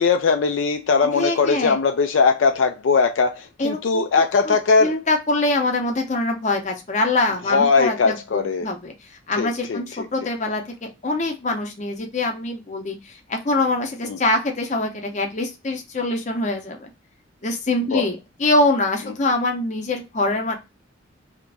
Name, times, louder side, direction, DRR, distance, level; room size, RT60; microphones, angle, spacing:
voice 1, 0.0-5.0 7.5-8.7 9.4-9.8 14.0-14.2 17.9-18.1, left 5 dB, 75° left, 0.4 m, -20 dB
voice 2, 1.1-1.8 3.6-4.0 4.4-8.9 9.3-16.9 17.4-20.5, left 2 dB, 40° left, 0.7 m, -24 dB
2.8 x 2.5 x 3.3 m
head